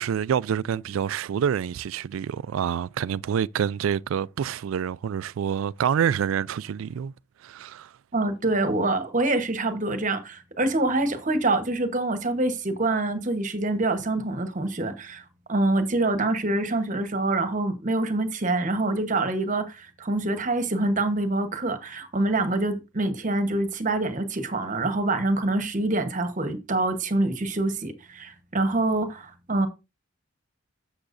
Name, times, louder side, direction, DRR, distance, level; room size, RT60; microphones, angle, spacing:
voice 1, 0.0-7.1 7.4-7.9, right 8 dB, 90° right, 0.3 m, -27 dB
voice 2, 8.1-15.2 15.5-29.7, right 2 dB, 40° right, 1.1 m, -25 dB
11.5 x 7.3 x 2.6 m
head